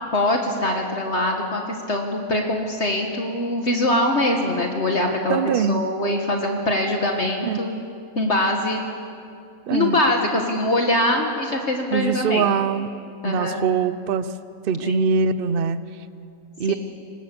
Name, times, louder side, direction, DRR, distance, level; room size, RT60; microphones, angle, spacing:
voice 1, 0.1-7.8 8.2-8.8 9.7-12.5 13.2-13.6 14.8-15.0 16.7-16.8, left 1 dB, 50° left, 2 dB, 1.8 m, -23 dB
voice 2, 5.3-5.8 7.4-7.6 9.7-10.0 11.9-12.9 13.2-14.3 14.6-15.8 16.6-16.7, right 6 dB, 50° right, 14 dB, 0.8 m, -22 dB
24.0 x 20.0 x 6.9 m, 2.5 s
omnidirectional pair, 1.5 m